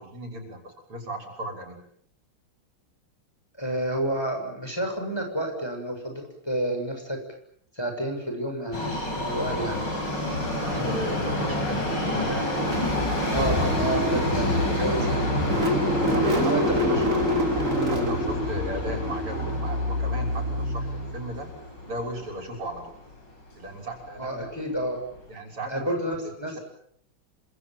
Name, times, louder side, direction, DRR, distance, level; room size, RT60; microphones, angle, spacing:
voice 1, 0.0-1.8 10.6-13.8 14.8-15.0 16.1-17.2 17.8-21.5 21.9-22.9 23.6-24.6 25.3-26.0 26.2-26.6, right 1 dB, 90° right, 3 dB, 7.1 m, -36 dB
voice 2, 3.6-7.2 7.7-9.9 13.3-15.3 16.3-17.0 24.2-25.0 25.7-26.6, right 1 dB, 10° left, 3 dB, 6.8 m, -30 dB
Subway metro underground, 8.7-22.8 23.1-23.2 24.1-24.2 24.5-24.6 25.2-25.3, left 1 dB, 55° left, 6.4 m, -29 dB
Car / Engine starting, 12.7-21.5, left 1 dB, 35° right, 3.4 m, -27 dB
28.5 x 26.0 x 7.6 m, 0.68 s
omnidirectional pair, 2.4 m